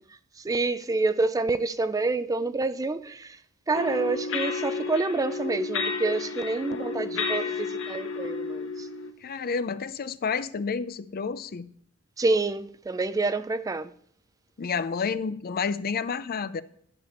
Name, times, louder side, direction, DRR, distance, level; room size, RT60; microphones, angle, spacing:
voice 1, 0.4-3.4 3.7-8.9 12.2-13.9, right 3 dB, 15° right, 0.3 m, -27 dB
sound 1, 3.7-9.1, left 4 dB, 60° left, 1.1 m, -31 dB
voice 2, 6.7-7.2 9.2-11.7 14.6-16.6, left 5 dB, 45° left, 0.5 m, -30 dB
11.0 x 6.9 x 4.2 m
head